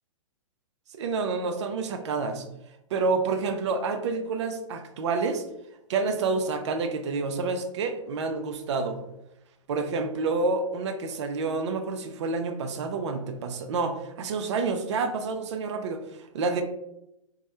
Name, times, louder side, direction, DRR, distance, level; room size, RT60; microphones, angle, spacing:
voice 1, 0.9-2.5 2.9-5.4 5.9-9.0 9.7-16.6, right 4 dB, 55° right, 7 dB, 0.4 m, -28 dB
2.2 x 2.0 x 2.8 m, 0.86 s
figure-of-eight pair, 115°, 18 cm